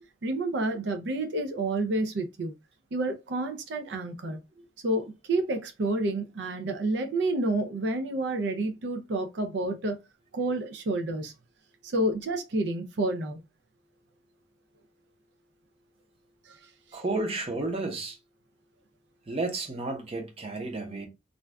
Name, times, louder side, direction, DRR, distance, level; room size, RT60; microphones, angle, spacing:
voice 1, 0.2-2.5 2.9-4.4 4.8-10.0 10.3-11.3 11.8-13.4 16.4-17.0, right 2 dB, 80° right, 0.5 m, -29 dB
voice 2, 16.9-18.2 19.3-21.1, right 2 dB, 35° right, 0.7 m, -32 dB
2.5 x 2.2 x 3.3 m
head